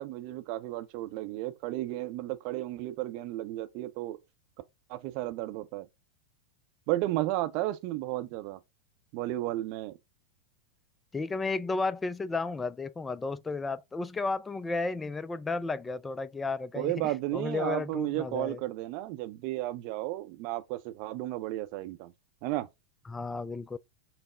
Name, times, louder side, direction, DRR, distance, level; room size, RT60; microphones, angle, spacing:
voice 1, 0.0-4.2 4.9-5.9 6.9-8.6 9.1-10.0 16.8-22.1 22.4-22.7, right 16 dB, 45° right, 0.5 m, -33 dB
voice 2, 11.1-18.6 23.1-23.8, left 3 dB, 15° left, 0.3 m, -33 dB
5.6 x 2.0 x 3.6 m
figure-of-eight pair, 90°, 0 cm